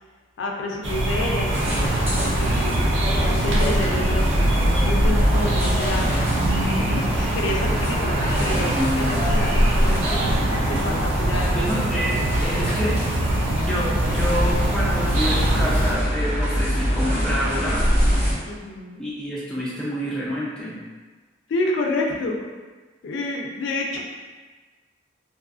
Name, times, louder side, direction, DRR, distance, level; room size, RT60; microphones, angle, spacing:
voice 1, 0.4-1.5 1.8-2.5 3.2-6.3 6.9-10.3 10.7-11.7 18.5-19.0 21.5-22.4 23.0-24.0, left 2 dB, 80° left, 0 dB, 0.3 m, -29 dB
sound 1, 0.8-15.9, right 1 dB, 80° right, 0.5 m, -24 dB
sound 2, 1.5-18.3, equal, 35° right, 0.8 m, -24 dB
voice 2, 8.6-9.3 11.5-13.0 13.6-17.9 19.0-20.8, equal, 5° left, -7 dB, 0.3 m, -28 dB
2.6 x 2.4 x 2.3 m, 1.3 s
head